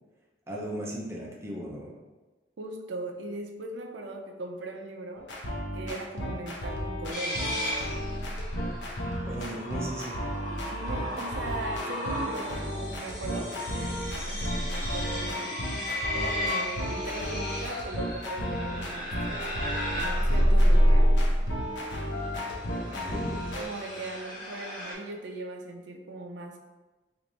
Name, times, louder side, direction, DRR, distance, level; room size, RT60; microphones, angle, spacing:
voice 1, 0.5-1.9 9.3-10.2 22.9-23.3, right 1 dB, 15° right, -3 dB, 0.6 m, -37 dB
voice 2, 2.6-5.3 5.7-7.5 10.7-19.7 19.9-21.1 23.6-26.6, right 2 dB, 85° right, 3 dB, 0.5 m, -39 dB
sound 1, 5.2-23.6, equal, 80° left, 0.7 m, -34 dB
sound 2, 7.1-24.9, equal, 45° left, 1.0 m, -29 dB
3.2 x 2.5 x 3.9 m, 1.2 s
head